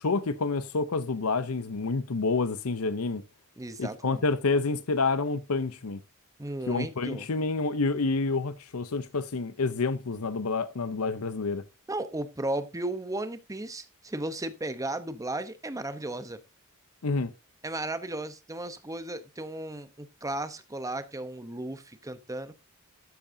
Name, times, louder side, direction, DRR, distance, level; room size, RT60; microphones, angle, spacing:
voice 1, 0.0-3.2 3.8-6.0 6.7-11.6 17.0-17.3, left 3 dB, 75° left, 0.7 m, -28 dB
voice 2, 3.6-4.2 6.4-7.3 11.9-16.4 17.6-22.5, right 2 dB, 15° right, 0.9 m, -35 dB
13.0 x 8.7 x 2.7 m
head